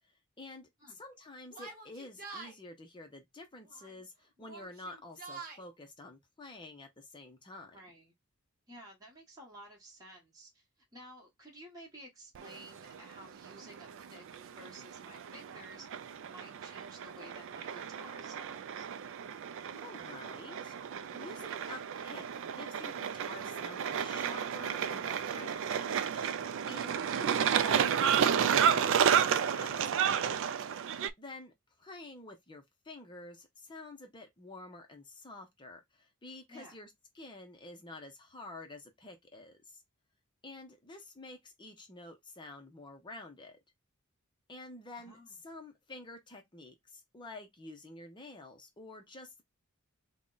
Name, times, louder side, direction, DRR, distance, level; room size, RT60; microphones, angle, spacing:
voice 1, 0.0-7.8 19.7-26.3 26.7-30.4 31.2-39.8 40.4-43.6 44.5-49.4, left 2 dB, 20° left, 0.6 m, -49 dB
Yell, 1.5-2.6 3.6-4.0 4.4-5.6, right 4 dB, 40° right, 0.9 m, -47 dB
voice 2, 7.7-8.1 8.7-10.6 10.9-14.2 14.5-15.9 16.2-18.9 36.5-36.8 44.9-45.4, right 1 dB, 15° right, 1.2 m, -53 dB
sound 1, 12.3-31.1, right 8 dB, 60° right, 0.3 m, -32 dB
3.7 x 2.2 x 3.8 m
head